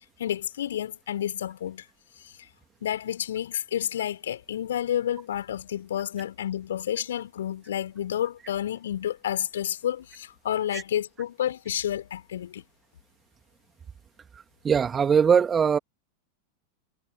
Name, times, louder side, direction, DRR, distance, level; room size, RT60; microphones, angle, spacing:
voice 1, 0.2-1.8 2.2-2.3 2.8-12.6, left 10 dB, 60° left, 4.5 m, -30 dB
voice 2, 14.6-15.8, right 7 dB, 20° right, 2.6 m, -21 dB
figure-of-eight pair, 90°, 0 cm